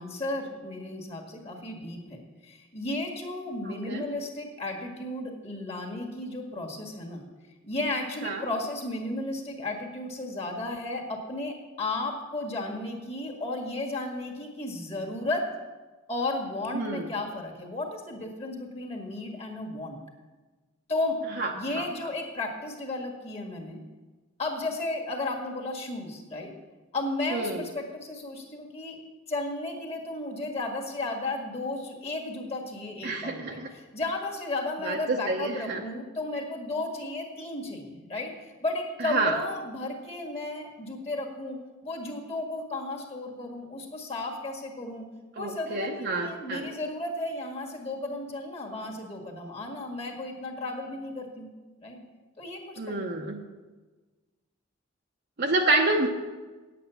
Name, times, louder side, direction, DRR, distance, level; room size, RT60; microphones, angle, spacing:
voice 1, 0.0-7.2 7.6-15.5 16.1-20.0 20.9-21.3 21.5-23.8 24.4-26.5 26.9-29.0 29.3-41.6 41.8-45.0 45.4-51.5 51.8-52.0 52.4-53.0, left 2 dB, 30° left, 1 dB, 1.7 m, -34 dB
voice 2, 3.7-4.0 8.2-8.4 16.7-17.0 21.4-21.5 21.8-21.9 27.3-27.6 33.0-33.7 34.9-35.0 35.3-35.8 39.1-39.3 45.4-46.7 52.8-53.4 55.4-56.1, right 2 dB, 50° right, 1 dB, 0.8 m, -28 dB
9.1 x 8.6 x 6.9 m, 1.3 s
head